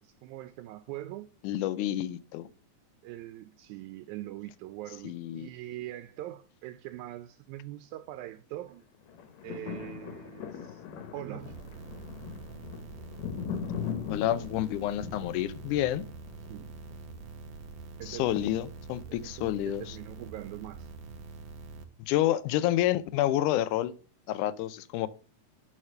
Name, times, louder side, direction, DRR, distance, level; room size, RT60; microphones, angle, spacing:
voice 1, 0.0-1.3 3.0-8.9 9.4-10.8 11.1-11.6 16.5-16.7 18.0-18.5 19.1-20.9, right 14 dB, 80° right, 1.9 m, -42 dB
voice 2, 1.4-2.5 5.0-5.5 14.1-16.0 18.1-19.8 22.1-23.9 24.3-25.1, left 13 dB, 90° left, 2.2 m, -29 dB
sound 1, 9.1-17.3 17.9-18.0, left 7 dB, 70° left, 2.1 m, -40 dB
sound 2, 11.4-21.8, right 4 dB, 65° right, 1.2 m, -45 dB
6.5 x 5.8 x 6.6 m
omnidirectional pair, 3.5 m